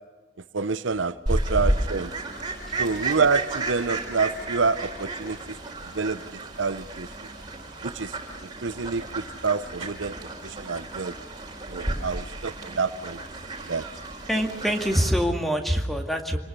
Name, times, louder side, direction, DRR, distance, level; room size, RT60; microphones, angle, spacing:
voice 1, 0.5-2.1 2.8-5.4 5.9-6.2 6.6-7.1 7.8-8.1 8.6-10.1 10.4-11.1 11.7-13.2 13.7-13.8, right 4 dB, 75° right, 13 dB, 0.8 m, -27 dB
Fowl, 1.3-15.1, right 2 dB, 20° right, 4.3 m, -32 dB
voice 2, 14.3-16.4, equal, ahead, 4 dB, 2.2 m, -24 dB
27.0 x 19.5 x 6.8 m, 1.2 s
head